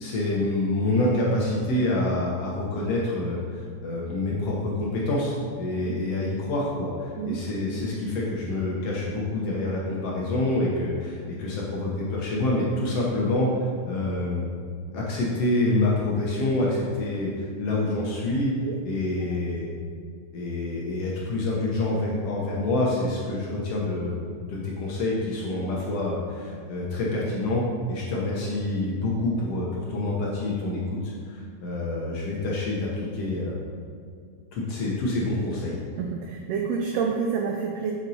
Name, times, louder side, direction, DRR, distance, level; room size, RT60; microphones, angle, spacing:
voice 1, 0.0-14.5 14.9-18.5 18.9-19.7 20.3-32.9 33.1-33.6 34.5-35.8, left 2 dB, 70° left, -4 dB, 1.7 m, -27 dB
voice 2, 36.0-37.9, right 6 dB, 80° right, 1 dB, 1.5 m, -28 dB
7.9 x 5.6 x 2.7 m, 2.2 s
omnidirectional pair, 3.4 m